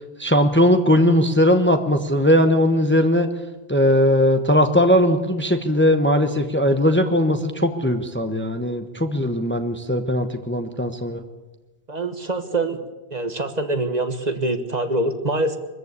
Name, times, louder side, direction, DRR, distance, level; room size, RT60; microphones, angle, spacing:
voice 1, 0.2-3.3 3.7-11.2, equal, 10° left, 7 dB, 1.1 m, -19 dB
voice 2, 11.9-12.8 13.1-15.6, right 2 dB, 40° right, 8 dB, 1.4 m, -24 dB
23.5 x 14.5 x 8.3 m, 1.2 s
omnidirectional pair, 1.1 m